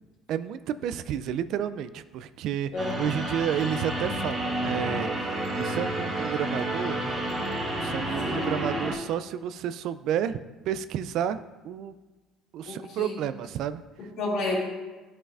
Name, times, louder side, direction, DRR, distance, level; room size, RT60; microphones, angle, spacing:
voice 1, 0.3-2.7 3.0-7.2 7.8-10.4 10.7-11.4 11.6-11.9 12.5-14.1, right 9 dB, 65° right, 13 dB, 0.3 m, -31 dB
sound 1, 2.8-8.9, right 1 dB, 35° right, 1.9 m, -30 dB
voice 2, 12.6-13.1 14.2-14.6, left 2 dB, 70° left, -4 dB, 2.3 m, -30 dB
11.0 x 5.4 x 2.5 m, 1.2 s
supercardioid pair, 90°, 0 cm